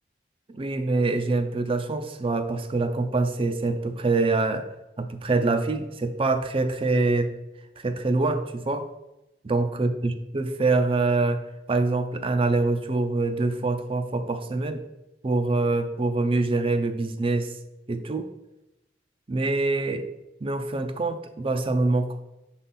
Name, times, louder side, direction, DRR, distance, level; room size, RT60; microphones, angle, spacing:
voice 1, 0.5-4.7 5.0-7.3 7.8-8.9 9.4-11.4 11.7-14.8 15.2-17.5 17.9-18.3 19.3-20.1 20.4-22.2, right 3 dB, 30° right, 9 dB, 0.5 m, -25 dB
6.6 x 4.1 x 3.8 m, 0.93 s
head